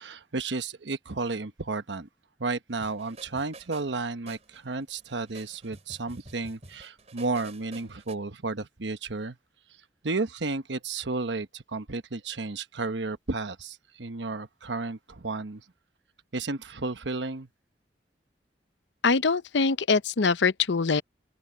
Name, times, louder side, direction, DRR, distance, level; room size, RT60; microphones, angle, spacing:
voice 1, 0.0-2.1 2.4-9.4 10.0-15.6 16.3-17.5, right 3 dB, 85° right, 1.1 m, -32 dB
sound 1, 2.8-8.1, right 3 dB, 40° right, 4.4 m, -49 dB
voice 2, 19.0-21.0, left 4 dB, 85° left, 0.7 m, -23 dB
open air
head